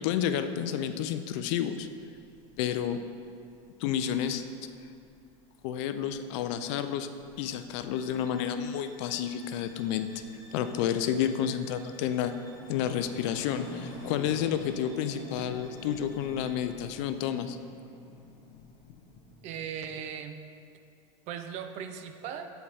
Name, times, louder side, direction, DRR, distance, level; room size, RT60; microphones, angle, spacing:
voice 1, 0.0-1.9 2.6-3.0 3.8-4.4 5.6-7.1 7.4-10.1 10.5-12.3 12.7-17.6, left 9 dB, 60° left, 9 dB, 0.4 m, -30 dB
sound 1, 1.0-19.8, left 2 dB, 35° left, 1.3 m, -48 dB
sound 2, 7.9-16.7, right 1 dB, 25° right, 1.1 m, -56 dB
voice 2, 19.4-20.4 21.3-22.5, right 8 dB, 40° right, 7 dB, 0.5 m, -38 dB
6.6 x 4.5 x 4.2 m, 2.5 s
supercardioid pair, 130°, 17 cm